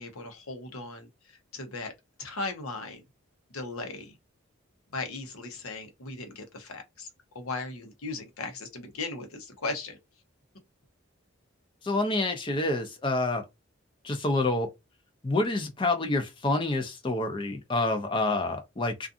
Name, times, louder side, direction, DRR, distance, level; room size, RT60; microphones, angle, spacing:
voice 1, 0.0-1.9 2.2-3.0 3.5-4.2 4.9-7.1 7.3-10.0, left 3 dB, 90° left, 0.8 m, -37 dB
voice 2, 11.8-13.4 14.0-14.7 15.2-19.1, left 2 dB, 25° left, 0.5 m, -27 dB
2.5 x 2.4 x 2.5 m
head